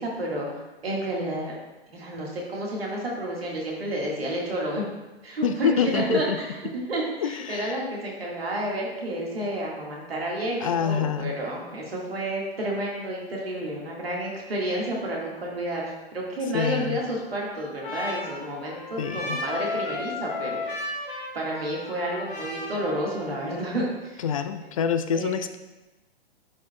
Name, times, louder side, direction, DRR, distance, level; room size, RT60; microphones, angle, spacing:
voice 1, 0.0-1.5 1.9-4.8 5.2-24.2 25.1-25.4, right 1 dB, 65° right, -2 dB, 1.8 m, -30 dB
voice 2, 5.4-6.4 7.2-7.8 10.6-11.4 16.5-17.0 19.0-19.4 24.2-25.6, left 7 dB, 35° left, 10 dB, 0.4 m, -26 dB
Trumpet, 17.0-23.7, left 2 dB, 55° left, 2.1 m, -35 dB
10.5 x 4.9 x 2.2 m, 1.1 s
figure-of-eight pair, 115°, 32 cm